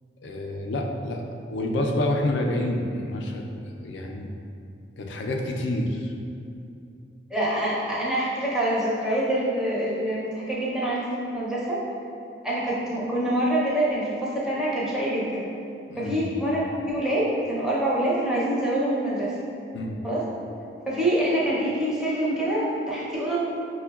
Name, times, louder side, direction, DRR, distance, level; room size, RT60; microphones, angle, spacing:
voice 1, 0.2-1.2 1.5-3.4 3.8-4.3 5.0-6.1 15.9-16.3 19.7-20.0, left 1 dB, 70° left, 1 dB, 0.4 m, -28 dB
voice 2, 7.3-11.8 12.4-15.5 16.0-19.3 20.0-20.2 20.9-23.4, right 1 dB, 5° right, -7 dB, 0.5 m, -25 dB
5.7 x 2.2 x 2.3 m, 2.6 s
head